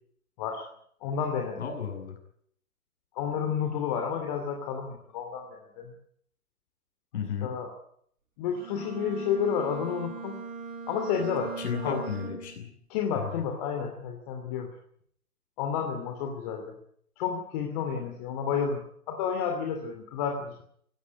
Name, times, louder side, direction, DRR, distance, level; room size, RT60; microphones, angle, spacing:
voice 1, 1.0-1.6 3.1-5.9 7.4-7.7 8.4-10.4 10.9-12.0 12.9-14.7 15.6-16.7 17.2-20.6, left 7 dB, 25° left, 3 dB, 2.8 m, -31 dB
voice 2, 1.6-2.2 7.1-7.6 11.6-12.7 13.1-13.3, left 7 dB, 50° left, 4 dB, 7.2 m, -34 dB
Bowed string instrument, 8.5-12.7, right 5 dB, 35° right, 5.8 m, -39 dB
17.0 x 16.5 x 9.6 m, 0.65 s
figure-of-eight pair, 140°, 44 cm